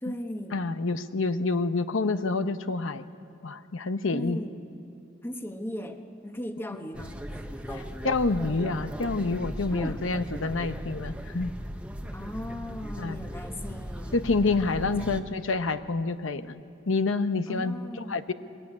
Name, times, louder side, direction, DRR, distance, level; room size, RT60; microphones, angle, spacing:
voice 1, 0.0-0.6 4.1-4.6 5.2-7.9 9.7-10.1 12.1-14.2 14.6-15.3 17.5-18.2, equal, 10° left, 5 dB, 1.2 m, -38 dB
voice 2, 0.5-3.1 3.4-4.4 8.0-11.6 13.0-13.2 14.1-17.8 18.1-18.3, left 3 dB, 80° left, 11 dB, 0.8 m, -28 dB
sound 1, 6.9-15.2, equal, 5° right, 1.0 m, -38 dB
21.5 x 21.0 x 9.8 m, 2.5 s
head